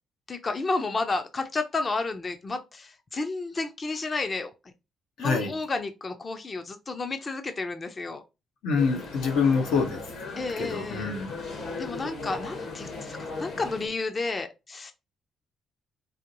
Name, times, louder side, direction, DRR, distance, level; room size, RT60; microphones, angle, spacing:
voice 1, 0.3-4.5 5.2-8.2 10.4-11.1 11.8-14.9, left 3 dB, 30° left, 0.5 m, -31 dB
voice 2, 5.2-5.5 8.6-10.0 10.6-11.3, left 5 dB, 90° left, 1.3 m, -25 dB
sound 1, 8.8-13.9, left 3 dB, 65° left, 1.7 m, -37 dB
4.8 x 2.9 x 2.9 m
cardioid pair, 120°, 0 cm